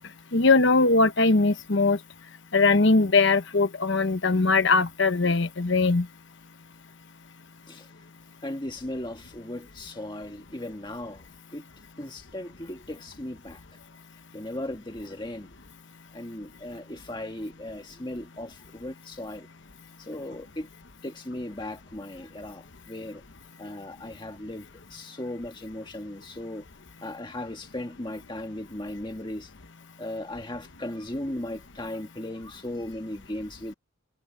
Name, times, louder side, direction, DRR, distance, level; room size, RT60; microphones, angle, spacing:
voice 1, 0.3-2.0 2.5-6.1, left 3 dB, 55° left, 1.0 m, -21 dB
voice 2, 8.4-11.3 11.5-11.7 12.0-13.6 14.3-15.5 16.1-19.5 20.0-20.7 21.0-23.2 23.6-26.6 27.0-29.5 30.0-33.7, left 1 dB, 20° left, 1.6 m, -37 dB
head